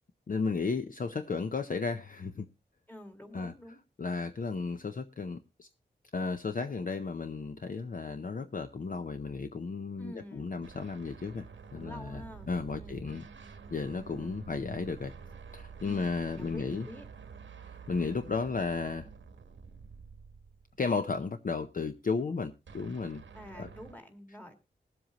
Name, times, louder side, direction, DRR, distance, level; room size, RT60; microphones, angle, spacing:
voice 1, 0.3-2.5 3.3-3.5 4.0-5.7 6.1-11.4 11.7-13.2 13.7-15.1 15.5-16.9 17.9-19.1 20.8-23.2 23.5-23.7, left 4 dB, 45° left, 0.6 m, -34 dB
voice 2, 2.9-3.8 10.0-10.5 11.8-12.5 12.7-13.1 15.8-17.1 23.3-24.5, equal, 10° left, 1.8 m, -47 dB
sound 1, 10.6-20.9 22.7-23.9, right 5 dB, 90° right, 1.1 m, -49 dB
20.5 x 7.7 x 2.9 m
wide cardioid pair, 120°, 19 cm